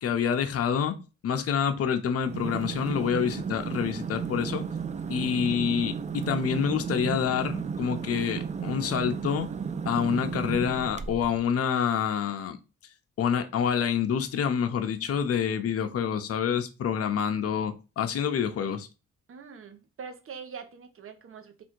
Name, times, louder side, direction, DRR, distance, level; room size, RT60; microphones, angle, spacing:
voice 1, 0.0-0.9 1.2-4.6 5.1-9.5 9.8-12.6 13.2-18.9, left 7 dB, 50° left, 0.7 m, -27 dB
sound 1, 2.2-11.4, right 6 dB, 25° right, 0.4 m, -34 dB
voice 2, 19.3-21.6, right 6 dB, 45° right, 0.9 m, -43 dB
3.5 x 2.6 x 4.5 m
cardioid pair, 90°, 30 cm